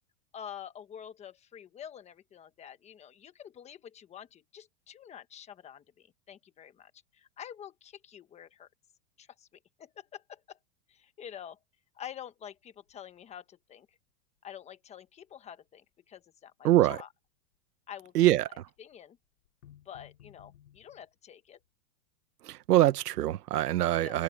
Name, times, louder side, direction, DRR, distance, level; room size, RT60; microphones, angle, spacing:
voice 1, 0.3-8.7 9.2-9.5 9.8-10.6 10.9-11.6 11.9-13.9 14.4-17.1 17.9-18.1 18.5-19.2 19.8-21.6 24.0-24.2, left 9 dB, 15° left, 1.1 m, -47 dB
sound 1, 12.9-13.0 13.3-13.4 18.2-18.7 19.5-21.1, left 11 dB, 70° left, 4.5 m, -56 dB
voice 2, 16.6-17.0 18.1-18.6 22.4-24.2, right 14 dB, 80° right, 1.2 m, -24 dB
supercardioid pair, 160°, 46 cm